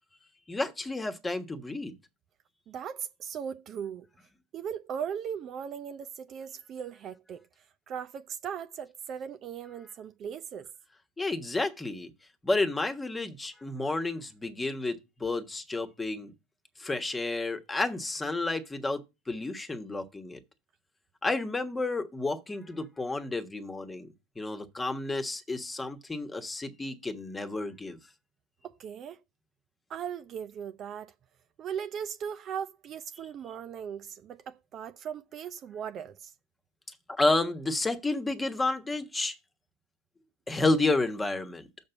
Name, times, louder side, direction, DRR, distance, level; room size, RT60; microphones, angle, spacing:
voice 1, 0.5-1.9 11.2-12.1 12.4-16.3 16.8-20.4 21.2-28.0 37.1-39.3 40.5-41.7, left 2 dB, 15° left, 1.3 m, -31 dB
voice 2, 2.7-4.1 4.5-7.4 7.9-10.7 28.6-29.2 29.9-31.1 31.6-36.3, right 8 dB, 40° right, 0.6 m, -38 dB
6.5 x 5.3 x 7.0 m
hypercardioid pair, 90°, 0 cm